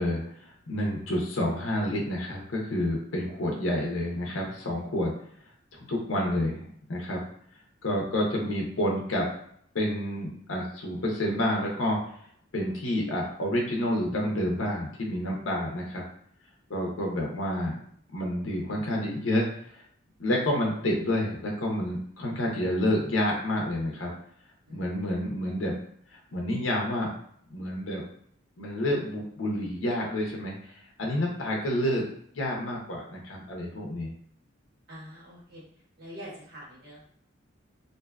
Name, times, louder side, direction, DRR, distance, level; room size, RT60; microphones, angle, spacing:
voice 1, 0.0-5.1 5.7-7.2 7.8-9.3 9.7-12.0 12.5-16.0 16.7-17.8 18.1-19.8 20.2-24.1 24.7-25.8 26.1-27.1 27.5-28.1 28.6-32.1 32.3-34.1, left 1 dB, 80° left, -1 dB, 0.6 m, -29 dB
voice 2, 34.9-35.6 36.0-37.0, equal, 50° right, -6 dB, 1.0 m, -44 dB
2.6 x 2.3 x 2.2 m, 0.63 s
head